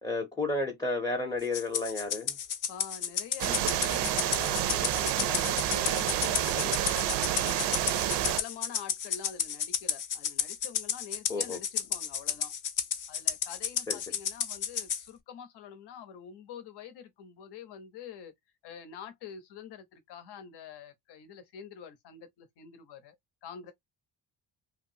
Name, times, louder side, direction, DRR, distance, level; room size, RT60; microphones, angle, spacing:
voice 1, 0.0-2.4 6.6-6.7 11.3-11.6 13.9-14.0, left 2 dB, 10° left, 0.5 m, -32 dB
Rattle (instrument), 1.5-15.0, left 8 dB, 50° left, 0.6 m, -32 dB
voice 2, 2.7-7.1 7.4-12.5 13.1-18.3 18.6-23.2 23.4-23.7, left 8 dB, 80° left, 0.8 m, -46 dB
sound 1, 3.4-8.4, right 12 dB, 90° right, 0.5 m, -29 dB
2.9 x 2.3 x 2.7 m
cardioid pair, 150°, 40 cm